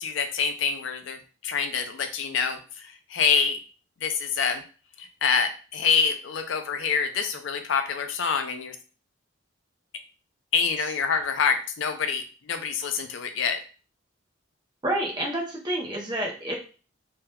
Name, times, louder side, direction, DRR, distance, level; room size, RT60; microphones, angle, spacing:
voice 1, 0.0-3.6 4.0-4.6 5.0-8.8 10.5-13.6, left 6 dB, 75° left, 7 dB, 0.5 m, -26 dB
voice 2, 14.8-16.5, right 1 dB, 20° right, 0 dB, 0.7 m, -28 dB
2.9 x 2.2 x 3.5 m, 0.36 s
head